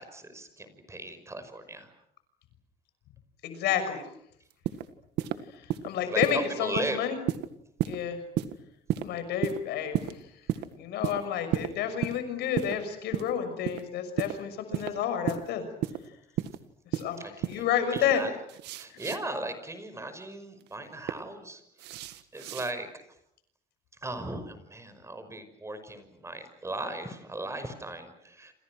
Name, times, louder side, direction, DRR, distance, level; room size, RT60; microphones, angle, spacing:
voice 1, 0.0-1.9 6.0-7.1 17.2-18.3 18.8-21.6 22.3-22.9 24.0-28.5, right 2 dB, 15° right, 10 dB, 5.6 m, -37 dB
voice 2, 3.4-4.0 5.5-7.2 7.8-8.2 9.0-10.0 10.7-15.7 16.9-18.2, left 9 dB, 80° left, 9 dB, 6.2 m, -30 dB
sound 1, 4.5-4.9 5.2-5.4 5.7-5.9 6.2-6.4 6.7-6.9 7.3-7.5 7.8-8.0 8.4-8.5 8.9-9.1 9.4-9.6 9.9-10.1 10.5-10.7 11.0-11.2 11.5-11.7 12.0-12.2 12.6-12.8 13.1-13.3 13.6-13.8 14.2-14.3 14.7-14.9 15.3-15.4 15.8-16.0 16.4-16.6 16.9-17.1 17.4-17.6 17.9-18.1 18.5-19.2 20.6-21.1 21.8-22.7, right 13 dB, 80° right, 1.8 m, -31 dB
29.0 x 27.5 x 6.4 m, 0.72 s
cardioid pair, 110°, 17 cm